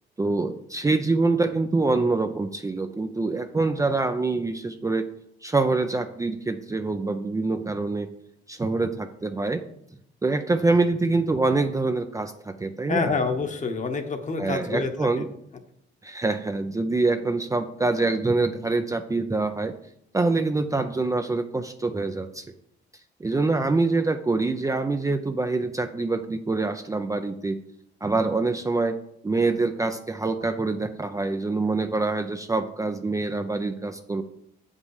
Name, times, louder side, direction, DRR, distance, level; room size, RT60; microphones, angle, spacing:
voice 1, 0.2-5.1 5.4-8.1 8.5-9.6 10.2-13.1 14.4-15.3 16.0-19.7 20.1-22.4 23.2-27.6 28.0-34.2, right 3 dB, 15° right, 7 dB, 0.5 m, -25 dB
voice 2, 12.9-15.3, left 4 dB, 40° left, 6 dB, 1.2 m, -27 dB
7.6 x 5.4 x 4.9 m, 0.73 s
cardioid pair, 90°, 20 cm